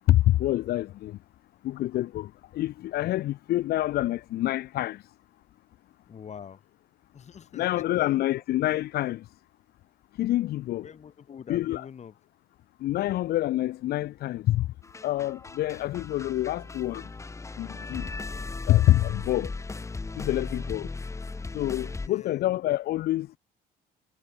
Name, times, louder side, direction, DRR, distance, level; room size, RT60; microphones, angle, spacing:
voice 1, 0.1-1.2 1.6-5.1 7.5-9.3 10.2-10.9 11.5-11.8 12.8-14.7 15.0-17.1 17.6-18.1 18.7-19.5 20.1-20.9 21.5-23.4, left 15 dB, 70° left, 1.0 m, -26 dB
voice 2, 6.1-6.6 7.1-7.7 7.9-8.2 10.8-12.1 22.0-22.5, left 7 dB, 40° left, 7.2 m, -45 dB
sound 1, 14.8-22.1, left 3 dB, 15° left, 1.4 m, -37 dB
cardioid pair, 110°, 17 cm